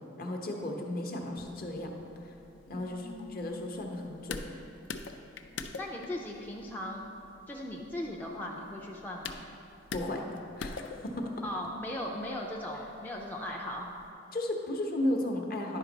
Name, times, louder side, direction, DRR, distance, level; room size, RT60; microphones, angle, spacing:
voice 1, 0.2-2.0 2.2-2.3 2.7-4.6 9.9-10.2 10.6-11.3 14.3-15.8, left 1 dB, 50° left, 2 dB, 0.8 m, -34 dB
sound 1, 1.4-14.1, left 4 dB, 65° left, 0.4 m, -46 dB
voice 2, 2.7-3.4 5.8-7.0 7.5-9.4 11.4-13.9, left 1 dB, 10° left, -2 dB, 0.4 m, -38 dB
10.5 x 5.2 x 3.9 m, 2.8 s
head